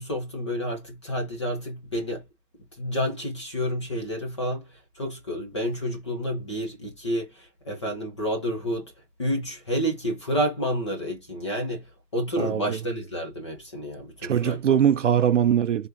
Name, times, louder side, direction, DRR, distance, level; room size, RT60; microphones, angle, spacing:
voice 1, 0.0-2.2 2.8-8.9 9.2-11.9 12.1-14.9, equal, 20° left, 0.5 m, -29 dB
voice 2, 12.4-12.8 14.2-15.9, right 9 dB, 50° right, 0.5 m, -22 dB
3.6 x 2.9 x 2.5 m
hypercardioid pair, 155°, 49 cm